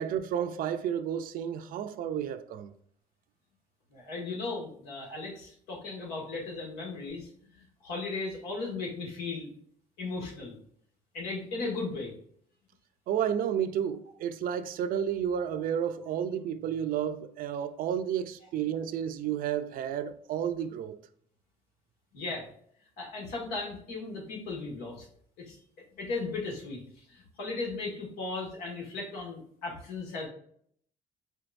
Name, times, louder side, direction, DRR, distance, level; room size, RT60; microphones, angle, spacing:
voice 1, 0.0-2.7 13.1-21.0, right 9 dB, 65° right, 0.5 m, -31 dB
voice 2, 3.9-7.3 7.5-9.5 10.0-10.5 11.1-12.1 22.1-22.5 23.0-25.1 25.4-25.6 25.9-30.3, left 3 dB, 90° left, 1.8 m, -36 dB
4.5 x 4.3 x 2.5 m
supercardioid pair, 80°, 15 cm